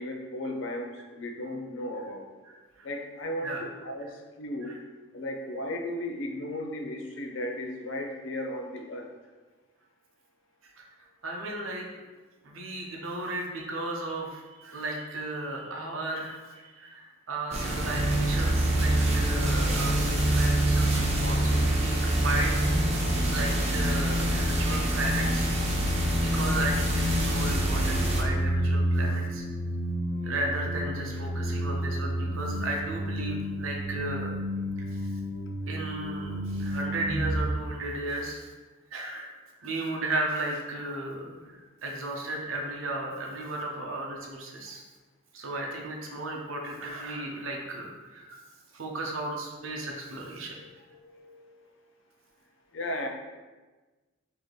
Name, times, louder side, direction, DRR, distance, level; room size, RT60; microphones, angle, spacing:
voice 1, 0.0-2.3 2.8-4.8 5.1-9.1 30.1-30.2 49.8-51.8 52.7-53.1, left 1 dB, 65° left, 3 dB, 0.5 m, -36 dB
voice 2, 2.4-2.9 3.4-3.6 4.6-4.8 10.8-10.9 11.2-12.0 12.4-22.7 23.2-25.5 26.2-29.4 30.2-34.3 34.9-35.1 35.7-38.4 38.9-39.3 39.6-44.8 45.3-48.4 48.7-50.6, right 2 dB, 80° right, 0 dB, 0.7 m, -35 dB
sound 1, 17.5-28.2, right 1 dB, 30° right, 0.6 m, -28 dB
sound 2, 17.8-37.4, equal, 5° left, 1.3 m, -29 dB
3.2 x 2.8 x 3.9 m, 1.3 s
head